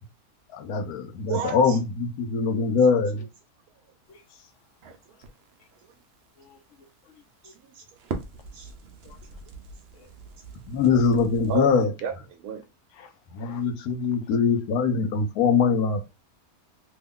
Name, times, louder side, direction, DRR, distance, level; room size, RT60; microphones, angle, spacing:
voice 1, 0.5-3.2 10.7-11.9 13.3-16.1, left 5 dB, 85° left, 1.1 m, -23 dB
voice 2, 1.3-1.8 7.4-7.8 8.5-8.7 11.5-12.6, right 8 dB, 80° right, 1.0 m, -33 dB
voice 3, 4.1-4.5 5.1-5.2 6.4-7.5 9.0-9.2 9.9-10.1 12.9-13.7, left 6 dB, 60° left, 0.9 m, -53 dB
Crackle, 4.1-11.8, right 4 dB, 60° right, 0.7 m, -43 dB
3.1 x 2.3 x 3.5 m
omnidirectional pair, 1.6 m